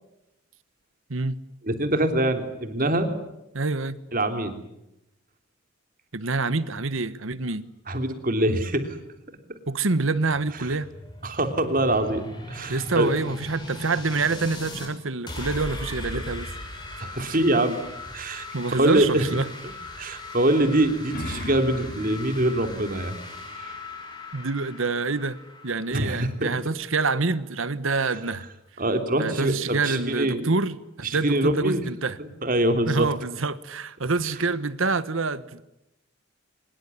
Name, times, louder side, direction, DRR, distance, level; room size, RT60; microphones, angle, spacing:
voice 1, 1.6-3.1 4.1-4.5 7.9-9.0 11.2-12.2 12.5-13.1 16.1-16.2 17.0-17.8 18.1-18.5 18.7-19.2 20.0-23.1 23.6-23.7 25.9-26.5 28.8-30.5 31.0-31.8 32.2-33.1, right 1 dB, 40° right, 3.2 m, -24 dB
voice 2, 3.5-4.0 6.1-7.6 9.7-10.9 12.7-16.5 18.5-19.5 21.3-21.5 24.3-25.4 25.6-28.5 29.2-32.2 32.9-35.6, right 3 dB, 75° right, 1.3 m, -26 dB
sound 1, 10.5-14.9 15.3-26.8, left 1 dB, 20° left, 6.2 m, -39 dB
sound 2, 21.1-24.3, left 1 dB, 45° left, 2.5 m, -39 dB
24.5 x 21.5 x 9.7 m
head